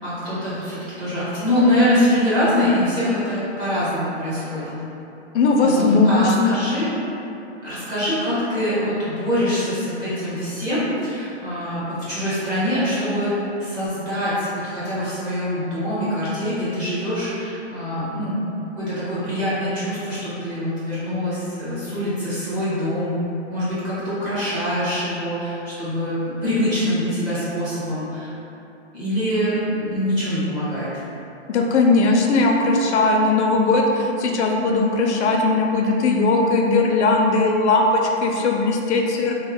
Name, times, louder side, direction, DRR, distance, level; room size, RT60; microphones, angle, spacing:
voice 1, 0.0-4.8 5.6-6.9 7.6-13.3 13.6-18.4 18.7-23.2 23.5-28.3 28.9-30.9, equal, 10° right, -13 dB, 0.8 m, -24 dB
voice 2, 5.3-6.6 31.5-39.4, left 3 dB, 70° left, 1 dB, 0.5 m, -18 dB
3.0 x 2.1 x 3.5 m, 3.0 s
hypercardioid pair, 160°, 36 cm